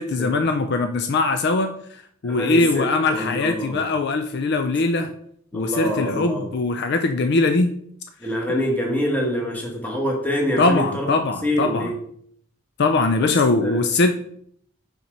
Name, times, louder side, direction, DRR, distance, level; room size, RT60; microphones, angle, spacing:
voice 1, 0.0-5.1 5.5-7.7 10.6-11.9 12.8-14.1, left 3 dB, 50° left, 7 dB, 0.4 m, -21 dB
voice 2, 2.2-3.9 5.5-6.5 8.2-11.1 11.4-11.9 13.2-13.3 13.6-13.9, equal, 5° left, -1 dB, 1.5 m, -25 dB
5.7 x 4.4 x 5.2 m, 0.66 s
head